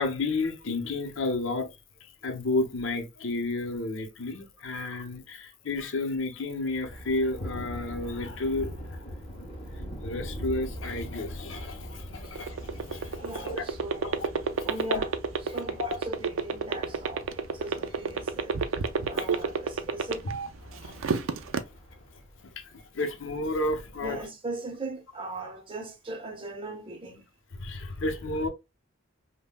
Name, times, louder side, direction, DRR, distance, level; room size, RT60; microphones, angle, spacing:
voice 1, 0.0-1.7 2.2-9.0 10.0-13.6 14.0-14.3 14.6-15.0 15.5-15.8 19.1-19.3 20.7-21.2 22.6-24.2 27.5-28.5, left 2 dB, 65° left, 0.7 m, -32 dB
Thunder, 6.7-22.6, equal, 30° left, 1.7 m, -42 dB
sound 1, 12.2-20.5 20.8-21.6, right 5 dB, 75° right, 0.4 m, -27 dB
voice 2, 13.1-14.3 14.6-15.1 15.4-20.3 20.7-21.1 24.0-27.2, right 2 dB, 25° right, 0.8 m, -39 dB
5.3 x 2.2 x 2.2 m
head